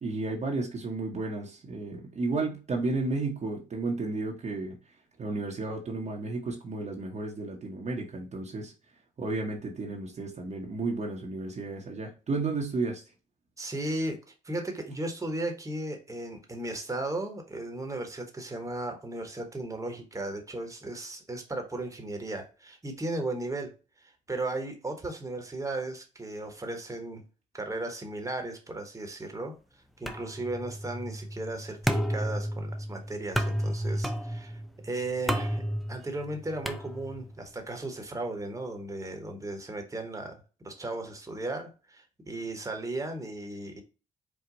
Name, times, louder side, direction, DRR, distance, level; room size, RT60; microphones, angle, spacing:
voice 1, 0.0-4.8 5.2-8.7 9.2-13.0, right 3 dB, 40° right, 0 dB, 1.2 m, -32 dB
voice 2, 13.6-14.2 14.4-23.7 24.0-27.2 27.5-29.6 30.0-35.6 35.9-43.8, right 2 dB, 15° right, 4 dB, 1.4 m, -36 dB
sound 1, 30.1-37.4, equal, ahead, 0.6 m, -32 dB
4.7 x 2.4 x 3.9 m, 0.32 s
hypercardioid pair, 55°, 18 cm